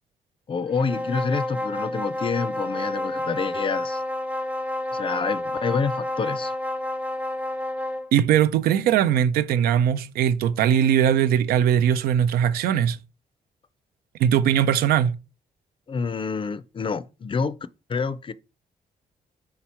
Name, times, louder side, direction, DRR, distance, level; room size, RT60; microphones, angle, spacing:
voice 1, 0.5-4.0 4.9-6.5 15.9-17.6 17.9-18.3, left 5 dB, 35° left, 0.4 m, -27 dB
sound 1, 0.7-8.1, left 1 dB, 10° right, 0.6 m, -29 dB
voice 2, 8.1-13.0 14.2-15.1, right 9 dB, 80° right, 0.4 m, -20 dB
3.7 x 2.9 x 4.3 m
supercardioid pair, 60°, 16 cm